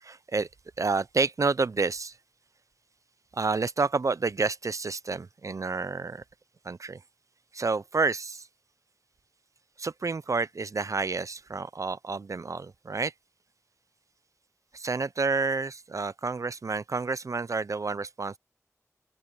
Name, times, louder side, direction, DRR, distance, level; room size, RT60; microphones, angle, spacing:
voice 1, 0.0-0.5 0.8-2.2 3.3-6.2 6.6-7.0 7.5-8.5 9.8-13.1 14.7-18.4, right 4 dB, 70° right, 0.5 m, -29 dB
open air
wide cardioid pair, 65°, 6 cm